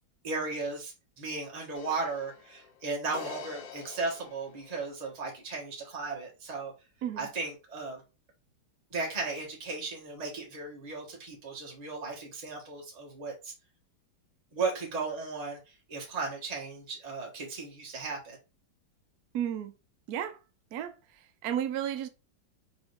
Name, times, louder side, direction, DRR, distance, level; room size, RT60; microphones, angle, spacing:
voice 1, 0.2-6.7 7.2-8.0 8.9-13.5 14.5-18.4, right 3 dB, 20° right, 1.4 m, -36 dB
sound 1, 1.7-5.1, left 7 dB, 75° left, 1.3 m, -46 dB
voice 2, 19.3-19.7 20.1-20.4 20.7-22.1, right 10 dB, 80° right, 0.8 m, -33 dB
4.0 x 3.6 x 3.3 m
omnidirectional pair, 2.2 m